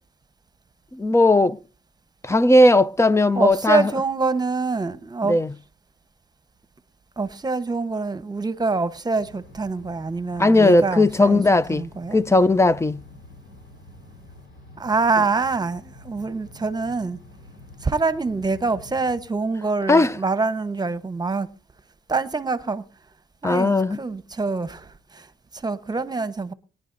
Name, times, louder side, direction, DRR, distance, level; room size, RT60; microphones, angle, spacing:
voice 1, 0.9-1.6 2.2-3.9 5.3-5.5 10.4-11.9 12.1-13.0 19.9-20.1 23.4-24.0, left 2 dB, 15° left, 0.5 m, -17 dB
voice 2, 3.3-5.4 7.2-11.4 11.7-12.2 14.8-17.2 17.8-21.5 22.1-22.8 23.4-23.7 24.0-26.5, right 3 dB, 20° right, 1.1 m, -25 dB
sound 1, 9.2-19.2, left 2 dB, 80° left, 4.7 m, -47 dB
22.0 x 10.5 x 2.7 m
cardioid pair, 90°, 20 cm